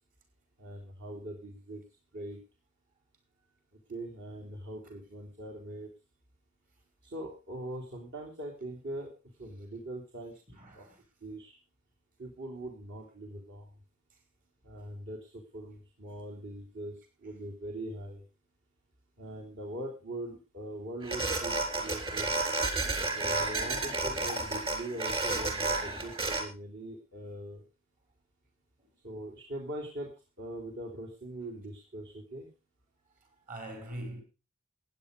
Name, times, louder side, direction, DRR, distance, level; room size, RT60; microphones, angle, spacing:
voice 1, 0.6-1.8 2.1-2.4 3.9-5.9 7.0-9.1 9.4-10.3 10.7-10.9 11.2-11.6 12.2-13.7 14.6-18.2 19.2-22.4 23.2-27.6 29.0-30.1 30.4-32.5, right 1 dB, 55° right, 3.5 m, -41 dB
voice 2, 10.6-11.0 26.0-26.2 33.5-34.2, right 1 dB, 40° right, 6.0 m, -42 dB
sound 1, 21.0-26.4, right 3 dB, 25° right, 3.9 m, -31 dB
15.5 x 9.9 x 5.2 m
head